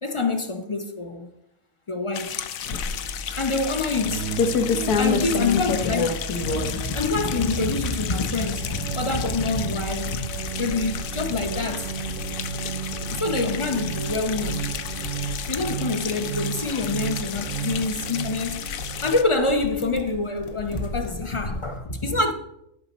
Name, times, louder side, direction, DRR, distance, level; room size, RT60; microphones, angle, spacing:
voice 1, 0.0-1.3 1.9-2.4 3.3-4.3 4.9-10.3 10.6-12.0 13.1-14.7 15.5-18.7 19.0-22.3, left 3 dB, 40° left, 0.4 m, -26 dB
sound 1, 2.1-19.2, left 9 dB, 70° left, 1.0 m, -34 dB
sound 2, 2.6-21.8, left 4 dB, 85° left, 1.4 m, -32 dB
sound 3, 3.9-19.1, right 9 dB, 70° right, 0.8 m, -34 dB
12.5 x 5.8 x 4.1 m
omnidirectional pair, 1.6 m